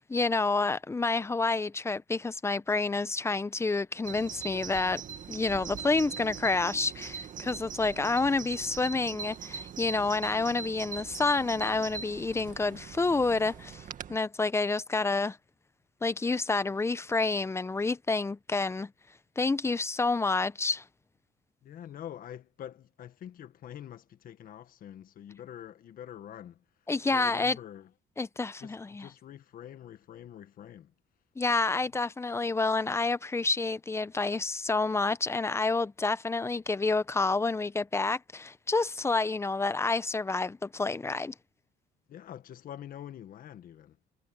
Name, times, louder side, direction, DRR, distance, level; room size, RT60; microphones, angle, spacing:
voice 1, 0.0-5.0 5.3-15.4 16.0-18.9 19.4-20.8 26.9-27.6 28.2-29.1 31.4-41.3, left 3 dB, 15° left, 0.7 m, -29 dB
Bird vocalization bird call bird song, 4.0-14.2, right 7 dB, 50° right, 2.1 m, -41 dB
voice 2, 21.6-26.6 27.1-27.9 28.6-30.9 42.1-44.0, left 10 dB, 55° left, 1.6 m, -45 dB
cardioid pair, 110°, 17 cm